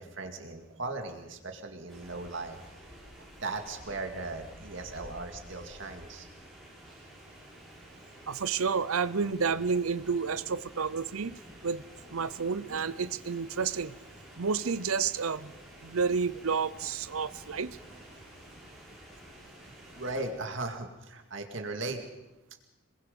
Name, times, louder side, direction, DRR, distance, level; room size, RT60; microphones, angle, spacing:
voice 1, 0.0-2.6 3.4-6.3 19.9-22.0, right 2 dB, 60° right, 4 dB, 2.2 m, -37 dB
sound 1, 1.9-20.3, equal, ahead, 7.2 m, -51 dB
voice 2, 8.3-11.8 12.1-13.9 14.4-15.5 15.8-17.8, right 5 dB, 80° right, 16 dB, 0.7 m, -30 dB
sound 2, 9.3-20.8, equal, 30° right, 2.0 m, -58 dB
27.5 x 21.0 x 5.4 m, 1.0 s
head